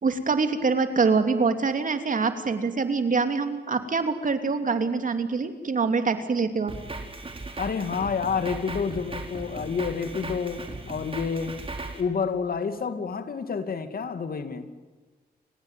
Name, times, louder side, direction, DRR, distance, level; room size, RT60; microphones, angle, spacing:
voice 1, 0.0-6.7, right 4 dB, 50° right, 7 dB, 3.1 m, -25 dB
Drum kit, 6.7-12.0, right 3 dB, 35° right, 4.7 m, -37 dB
voice 2, 7.6-11.6 12.0-14.7, left 5 dB, 60° left, 9 dB, 2.6 m, -29 dB
29.5 x 16.5 x 9.2 m, 1.3 s
cardioid pair, 80°, 17 cm